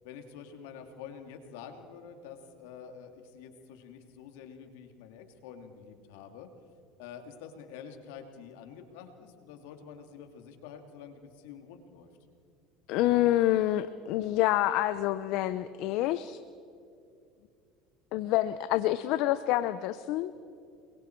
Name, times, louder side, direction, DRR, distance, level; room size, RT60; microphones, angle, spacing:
voice 1, 0.0-6.5 7.0-12.1, left 7 dB, 80° left, 5 dB, 2.6 m, -47 dB
voice 2, 12.9-16.4 18.1-20.3, left 14 dB, 65° left, 13 dB, 0.7 m, -27 dB
29.5 x 22.5 x 4.6 m, 2.4 s
supercardioid pair, 105°, 0 cm